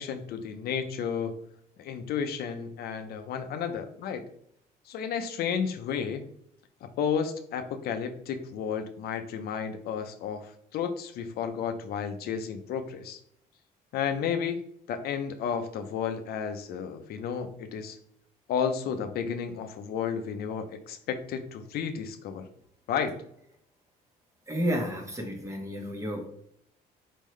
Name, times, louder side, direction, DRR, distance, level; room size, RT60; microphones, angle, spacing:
voice 1, 0.0-1.3 1.8-4.2 4.9-6.2 6.8-13.2 13.9-14.6 14.9-18.0 18.5-22.5 22.9-23.1, left 7 dB, 65° left, 7 dB, 0.6 m, -32 dB
voice 2, 24.5-26.3, equal, 20° right, 2 dB, 1.2 m, -31 dB
4.5 x 3.7 x 3.1 m, 0.70 s
cardioid pair, 110°, 17 cm